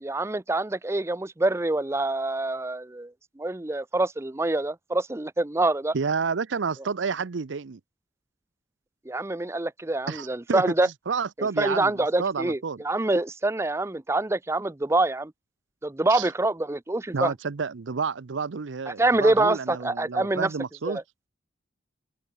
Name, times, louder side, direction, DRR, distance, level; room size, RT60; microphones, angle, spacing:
voice 1, 0.0-3.1 3.4-5.9 9.1-10.9 11.4-15.3 15.8-17.3 18.9-20.5 20.8-21.0, right 2 dB, 15° right, 0.5 m, -25 dB
voice 2, 5.9-7.8 10.1-12.8 16.1-16.3 17.1-21.0, right 5 dB, 85° right, 0.6 m, -30 dB
head